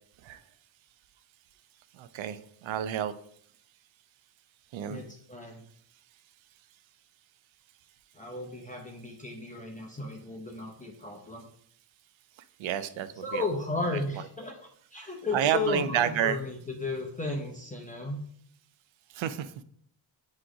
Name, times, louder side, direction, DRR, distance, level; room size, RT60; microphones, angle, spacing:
voice 1, 2.0-3.1 4.7-5.0 12.6-13.4 15.3-16.4 19.1-19.5, right 10 dB, 85° right, 13 dB, 0.6 m, -30 dB
voice 2, 4.9-5.7 8.2-11.4 13.2-18.2, left 3 dB, 15° left, -1 dB, 0.8 m, -34 dB
6.1 x 3.1 x 4.9 m, 0.65 s
cardioid pair, 105°, 45 cm